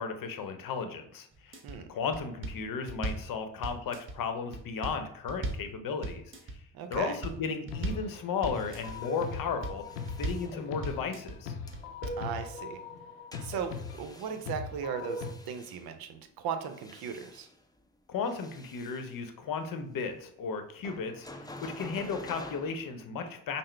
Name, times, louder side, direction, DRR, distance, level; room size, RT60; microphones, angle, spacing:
voice 1, 0.0-6.2 6.9-9.8 10.2-11.5 18.1-23.6, left 5 dB, 55° left, 8 dB, 0.8 m, -35 dB
sound 1, 1.3-1.8 2.1-3.3 3.6-4.2 4.5-5.7 6.0-6.6 6.9-7.4 7.7-8.1 8.4-9.0 9.3-9.8 10.1-10.5 10.8-11.4 11.7-12.2, right 2 dB, 30° right, 1.0 m, -37 dB
voice 2, 6.7-7.2 12.2-12.8 13.4-13.7 14.0-17.5, right 7 dB, 65° right, 8 dB, 0.7 m, -37 dB
sound 2, 7.7-15.3, left 4 dB, 85° left, 0.6 m, -40 dB
sound 3, 8.5-11.1 11.7-11.8 13.3-15.9 16.5-17.8 18.2-19.2 20.8-22.9, left 1 dB, 10° left, 0.6 m, -49 dB
5.6 x 2.1 x 3.2 m, 0.67 s
hypercardioid pair, 50°, 40 cm